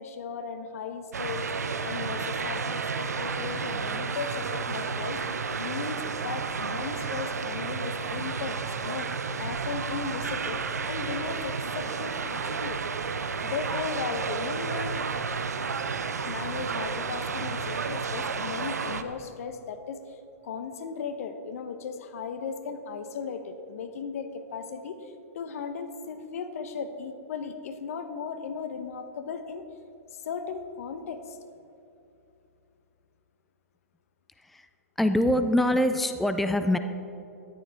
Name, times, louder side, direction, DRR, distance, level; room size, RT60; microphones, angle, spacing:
voice 1, 0.0-1.5 1.8-9.1 9.4-12.8 13.4-15.0 16.2-29.6 30.1-31.4, left 6 dB, 65° left, 9 dB, 0.8 m, -36 dB
sound 1, 1.1-19.0, right 5 dB, 90° right, 0.6 m, -32 dB
voice 2, 35.0-36.8, left 1 dB, ahead, 9 dB, 0.4 m, -24 dB
13.5 x 9.9 x 3.5 m, 2.8 s
hypercardioid pair, 125°, 8 cm